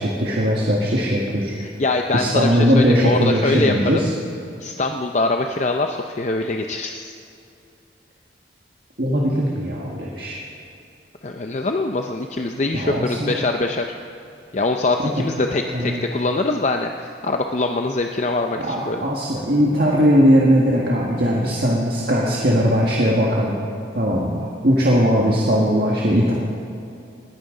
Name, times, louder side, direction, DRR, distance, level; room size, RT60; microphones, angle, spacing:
voice 1, 0.0-1.5 2.1-4.1 9.0-10.4 12.7-13.3 15.0-15.1 15.7-16.0 18.6-23.6 24.0-26.3, equal, 55° right, -4 dB, 1.7 m, -19 dB
voice 2, 1.6-4.0 4.6-7.1 11.2-13.8 14.5-19.0, left 2 dB, 40° left, 4 dB, 0.6 m, -23 dB
20.0 x 14.5 x 3.9 m, 2.6 s
head